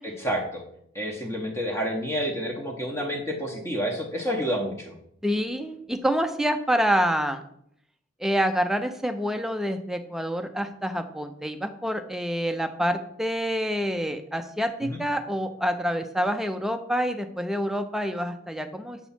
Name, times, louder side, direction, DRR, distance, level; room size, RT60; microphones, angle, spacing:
voice 1, 0.0-0.6 0.9-5.0 14.8-15.0, equal, 15° left, 1 dB, 0.8 m, -29 dB
voice 2, 5.2-7.4 8.2-19.0, equal, ahead, 6 dB, 0.4 m, -27 dB
7.0 x 3.1 x 5.6 m, 0.71 s
head